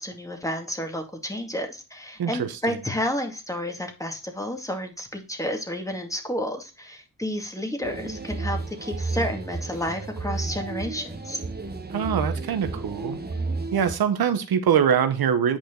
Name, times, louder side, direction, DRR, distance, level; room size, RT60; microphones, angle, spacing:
voice 1, 0.0-11.4, left 1 dB, 10° left, 2.2 m, -31 dB
voice 2, 2.2-2.8 11.9-13.2 13.7-15.6, right 8 dB, 75° right, 1.0 m, -23 dB
sound 1, 7.8-13.9, right 3 dB, 25° right, 1.5 m, -32 dB
8.8 x 5.0 x 3.8 m
cardioid pair, 75°, 36 cm